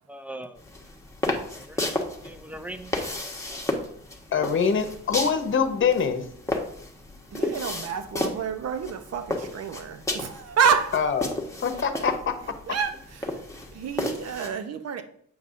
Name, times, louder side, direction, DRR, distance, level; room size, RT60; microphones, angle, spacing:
voice 1, 0.1-0.6 1.5-3.3 7.3-7.6, right 1 dB, 5° right, 8 dB, 0.6 m, -42 dB
sound 1, 0.6-14.5, left 2 dB, 10° left, 1.1 m, -33 dB
voice 2, 4.3-6.2 10.9-11.3 11.6-12.3, left 6 dB, 40° left, 8 dB, 1.0 m, -24 dB
voice 3, 7.3-11.0 12.7-13.3 13.7-15.0, right 6 dB, 55° right, 8 dB, 0.8 m, -28 dB
7.9 x 5.3 x 2.6 m, 0.65 s
cardioid pair, 90°, 30 cm